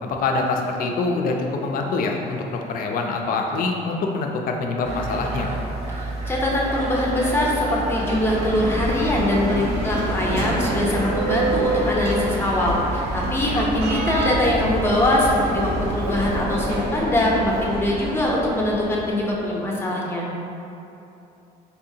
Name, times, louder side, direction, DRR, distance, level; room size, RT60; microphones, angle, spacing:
voice 1, 0.0-5.5 13.4-13.6, left 3 dB, 55° left, 2 dB, 0.4 m, -25 dB
sound 1, 4.8-16.3, right 2 dB, 40° right, 0.6 m, -30 dB
voice 2, 6.0-20.3, left 1 dB, 15° left, -4 dB, 0.6 m, -22 dB
Bell, 7.8-19.5, right 1 dB, 85° right, 0.7 m, -28 dB
4.1 x 2.7 x 2.7 m, 2.8 s
cardioid pair, 110°, 17 cm